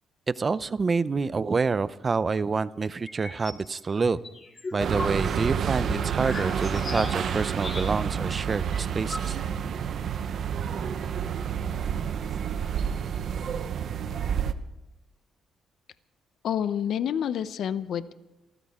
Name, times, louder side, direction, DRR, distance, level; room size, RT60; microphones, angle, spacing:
voice 1, 0.4-4.2 4.7-9.4, right 4 dB, 35° right, 17 dB, 0.6 m, -27 dB
sound 1, 3.1-3.6 4.0-8.2 8.5-8.6 8.7-9.7, left 3 dB, 30° left, 2.3 m, -38 dB
sound 2, 4.8-14.5, right 8 dB, 60° right, 0.9 m, -29 dB
voice 2, 16.4-18.1, left 9 dB, 70° left, 14 dB, 0.7 m, -28 dB
27.5 x 14.0 x 3.7 m, 1.0 s
cardioid pair, 90°, 0 cm